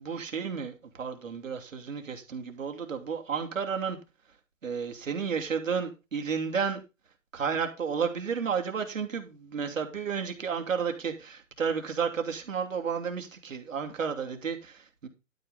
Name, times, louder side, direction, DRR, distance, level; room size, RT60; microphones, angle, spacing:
voice 1, 0.0-4.0 4.6-6.8 7.3-15.1, right 6 dB, 70° right, 2.8 m, -32 dB
12.0 x 5.5 x 5.1 m
hypercardioid pair, 150°, 40 cm